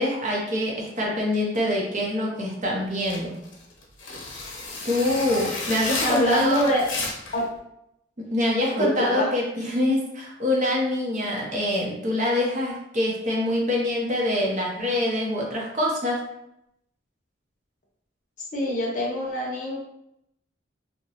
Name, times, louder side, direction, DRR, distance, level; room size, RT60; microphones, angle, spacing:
voice 1, 0.0-3.3 4.8-6.6 8.3-16.2, left 1 dB, 40° right, -2 dB, 0.6 m, -25 dB
sound 1, 3.0-7.4, left 3 dB, 75° left, 0.8 m, -32 dB
voice 2, 6.0-6.9 7.3-7.4 8.7-9.3 18.5-19.8, left 1 dB, 40° left, -3 dB, 0.7 m, -24 dB
2.8 x 2.1 x 2.8 m, 0.79 s
head